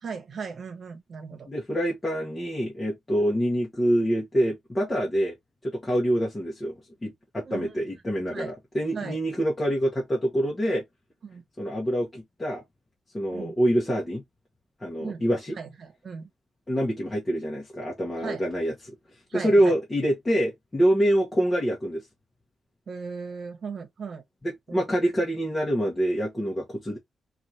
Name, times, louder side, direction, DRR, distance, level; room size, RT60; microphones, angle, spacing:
voice 1, 0.0-1.5 7.4-7.8 8.3-8.5 8.9-9.2 11.2-11.4 13.3-13.5 15.0-15.2 15.5-16.3 18.2-18.4 19.3-19.8 22.9-24.2 24.7-24.9, right 5 dB, 55° right, 1.0 m, -37 dB
voice 2, 1.5-5.4 5.6-10.8 11.6-12.6 13.1-14.2 14.8-15.5 16.7-18.9 19.3-22.0 24.4-27.0, equal, 20° left, 1.1 m, -26 dB
4.5 x 2.5 x 2.8 m
wide cardioid pair, 135°, 0 cm